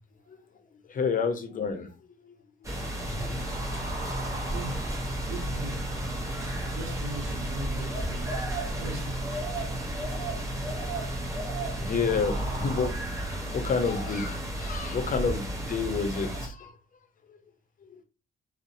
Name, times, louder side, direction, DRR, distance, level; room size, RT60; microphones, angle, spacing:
voice 1, 0.9-1.9 2.3-2.4 3.1-3.4 11.8-16.7, left 5 dB, 40° left, 0.6 m, -29 dB
sound 1, 2.6-16.5, right 1 dB, 15° right, 0.7 m, -33 dB
sound 2, 3.0-12.9, right 1 dB, 45° right, 1.1 m, -38 dB
voice 2, 4.5-5.9 6.7-8.4 8.8-9.3, right 2 dB, 75° right, 0.7 m, -40 dB
2.6 x 2.0 x 2.6 m
cardioid pair, 90°, 20 cm